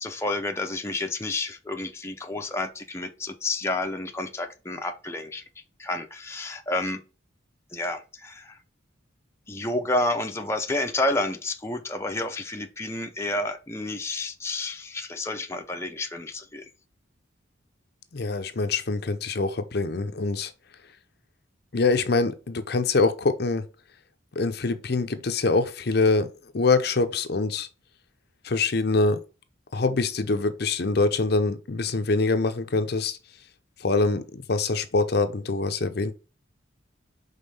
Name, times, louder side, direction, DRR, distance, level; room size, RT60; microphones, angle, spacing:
voice 1, 0.0-5.4 5.8-7.0 7.7-8.6 9.5-16.6, left 2 dB, 15° left, 0.6 m, -30 dB
voice 2, 18.1-20.5 21.7-23.6 24.4-26.3 26.5-27.7 28.4-29.2 29.7-33.2 33.8-36.1, left 3 dB, 55° left, 0.6 m, -24 dB
5.5 x 3.7 x 5.4 m
head